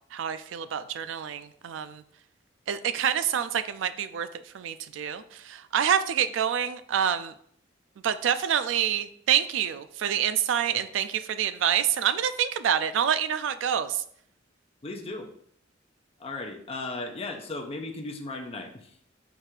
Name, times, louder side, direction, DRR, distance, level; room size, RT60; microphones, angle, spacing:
voice 1, 0.1-2.0 2.7-4.3 4.5-7.3 8.0-14.0, right 9 dB, 75° right, 12 dB, 0.3 m, -27 dB
voice 2, 14.8-15.3 16.2-19.0, left 2 dB, 30° left, 3 dB, 0.5 m, -36 dB
4.9 x 2.4 x 4.5 m, 0.65 s
head